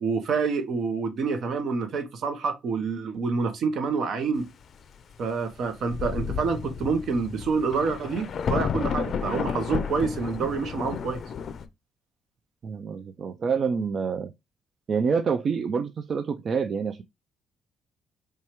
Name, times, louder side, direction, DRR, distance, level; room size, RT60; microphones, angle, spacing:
voice 1, 0.0-4.5 5.2-11.2, right 5 dB, 70° right, 0.7 m, -27 dB
Thunder, 5.5-5.6 5.9-11.7, left 6 dB, 55° left, 0.4 m, -31 dB
voice 2, 12.6-14.3 14.9-17.0, right 5 dB, 50° right, 0.3 m, -27 dB
4.4 x 2.3 x 2.9 m
cardioid pair, 90°, 0 cm